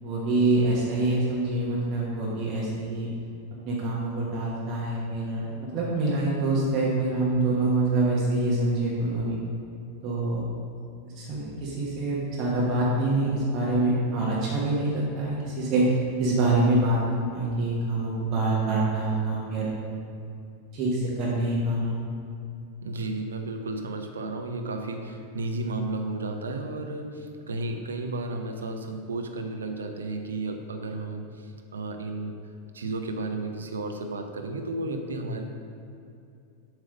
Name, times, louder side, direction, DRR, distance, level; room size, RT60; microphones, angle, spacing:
voice 1, 0.0-3.1 3.7-9.4 10.0-10.5 11.2-15.9 16.2-19.7 20.7-22.0, right 2 dB, 35° right, -5 dB, 1.1 m, -25 dB
voice 2, 22.8-32.4 32.7-35.4, right 2 dB, 70° right, 4 dB, 0.6 m, -33 dB
7.2 x 3.3 x 5.1 m, 2.5 s
figure-of-eight pair, 90°, 0 cm